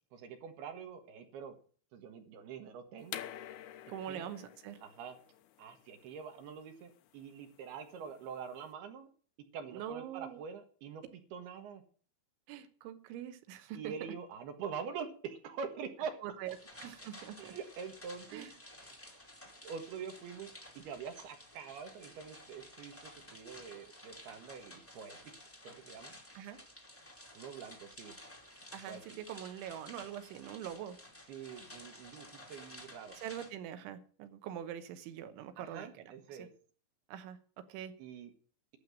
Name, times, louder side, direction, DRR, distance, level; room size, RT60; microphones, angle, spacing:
voice 1, 0.1-1.6 1.9-3.2 4.1-4.4 4.8-5.2 5.6-9.1 9.5-11.8 13.7-16.2 17.4-18.5 18.8-19.0 19.4-25.3 25.6-26.2 27.3-28.1 28.9-29.0 31.3-33.2 35.6-36.5 38.0-38.3, right 6 dB, 65° right, 6 dB, 3.1 m, -45 dB
sound 1, 3.0-8.6, left 11 dB, 75° left, 2.5 m, -49 dB
voice 2, 3.9-4.8 9.7-10.4 12.5-13.9 16.2-16.6 16.8-17.5 18.3-18.5 26.4-26.6 28.7-31.0 33.2-35.9 36.4-36.5 37.1-37.4 37.7-37.9, right 10 dB, 85° right, 10 dB, 3.5 m, -43 dB
sound 2, 16.5-33.5, left 1 dB, 10° left, 0.7 m, -53 dB
12.0 x 7.6 x 7.6 m, 0.44 s
omnidirectional pair, 5.4 m